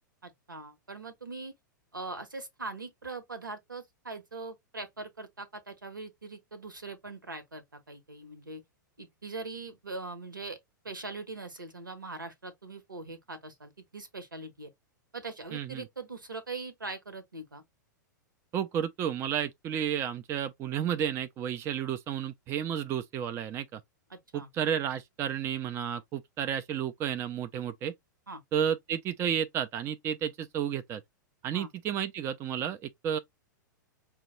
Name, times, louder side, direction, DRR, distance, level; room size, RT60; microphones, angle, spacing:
voice 1, 0.2-1.5 1.9-8.6 9.0-10.6 10.8-14.7 15.1-17.6 24.1-24.5 28.3-28.4 31.5-31.7, right 3 dB, 85° right, 1.0 m, -41 dB
voice 2, 15.5-15.8 18.5-23.8 24.3-27.9 28.5-31.0 31.4-33.2, right 9 dB, 25° right, 0.4 m, -32 dB
5.2 x 2.2 x 3.0 m
figure-of-eight pair, 100°, 11 cm